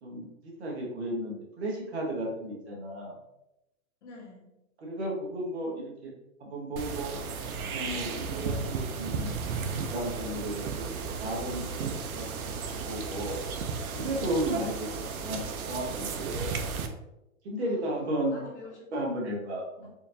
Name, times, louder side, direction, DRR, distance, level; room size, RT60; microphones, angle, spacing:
voice 1, 0.0-3.2 4.8-6.1 6.4-7.2 7.7-9.3 9.9-11.9 12.1-12.6 12.9-13.4 13.9-14.9 15.2-16.5 17.4-18.3 18.9-19.9, right 1 dB, 50° right, -2 dB, 1.3 m, -34 dB
voice 2, 4.0-4.6 14.5-15.2 17.6-18.9 19.8-19.9, left 3 dB, 55° left, -1 dB, 1.2 m, -49 dB
sound 1, 6.8-16.9, right 5 dB, 85° right, 0.7 m, -34 dB
4.3 x 2.8 x 2.7 m, 0.91 s
hypercardioid pair, 165°, 42 cm